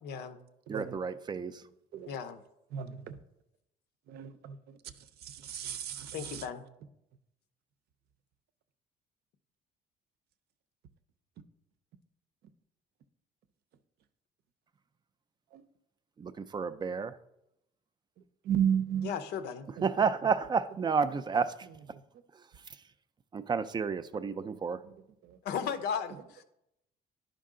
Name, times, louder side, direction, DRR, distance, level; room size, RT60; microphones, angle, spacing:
voice 1, 0.0-0.4 2.1-2.4 6.1-6.6 19.0-19.6 25.4-26.4, left 7 dB, 80° left, 0.7 m, -36 dB
voice 2, 0.7-1.5 16.2-17.1 19.8-21.5 23.3-24.8, right 5 dB, 25° right, 0.4 m, -30 dB
voice 3, 4.1-4.8 5.4-6.4 15.5-15.6 18.5-19.1 24.1-24.6, right 9 dB, 70° right, 0.6 m, -33 dB
10.5 x 5.2 x 3.7 m
cardioid pair, 110°, 17 cm